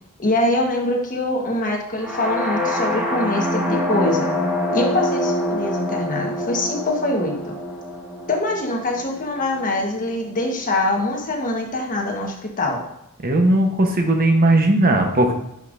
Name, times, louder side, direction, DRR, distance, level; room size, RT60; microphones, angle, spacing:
voice 1, 0.2-4.3 4.7-7.6 8.3-12.8, left 1 dB, 35° left, 0 dB, 1.2 m, -23 dB
sound 1, 2.0-9.9, left 1 dB, 5° right, 1.2 m, -25 dB
voice 2, 13.2-15.3, right 1 dB, 40° right, 4 dB, 0.9 m, -17 dB
9.6 x 5.2 x 2.6 m, 0.81 s
head